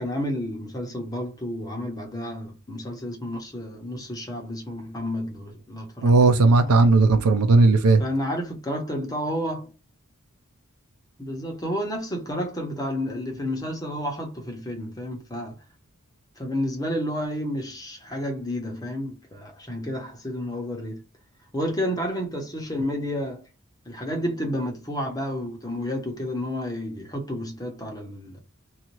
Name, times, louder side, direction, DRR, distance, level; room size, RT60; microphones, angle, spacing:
voice 1, 0.0-6.9 8.0-9.7 11.2-15.6 16.4-21.0 21.5-23.4 23.9-28.4, equal, 15° left, 0.9 m, -31 dB
voice 2, 6.0-8.0, right 3 dB, 85° right, 0.5 m, -16 dB
2.7 x 2.4 x 3.0 m
head